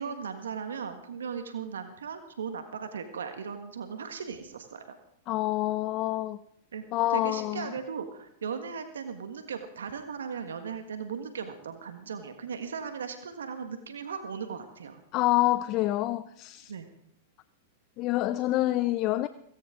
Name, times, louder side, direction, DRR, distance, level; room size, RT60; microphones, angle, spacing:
voice 1, 0.0-5.0 6.7-6.8 7.1-15.0 16.7-16.9, right 6 dB, 85° right, 1.5 m, -37 dB
voice 2, 5.3-6.4 6.9-7.7 15.1-16.7 18.0-19.3, left 16 dB, 45° left, 0.6 m, -27 dB
17.5 x 17.0 x 3.8 m
hypercardioid pair, 110°, 0 cm